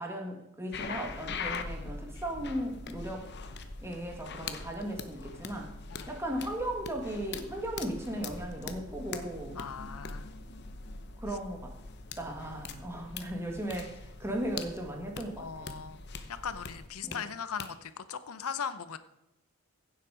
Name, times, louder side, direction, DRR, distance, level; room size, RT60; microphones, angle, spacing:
voice 1, 0.0-3.3 3.8-5.7 6.1-9.6 11.2-11.7 12.2-15.7 17.0-17.2, right 1 dB, 10° right, 1 dB, 1.9 m, -37 dB
sound 1, 0.7-17.2 17.6-17.7, left 4 dB, 50° left, 1.0 m, -42 dB
voice 2, 9.5-10.3 12.9-13.0 15.4-16.0 16.3-19.0, left 7 dB, 85° left, 13 dB, 0.7 m, -39 dB
16.0 x 7.3 x 5.0 m, 0.89 s
head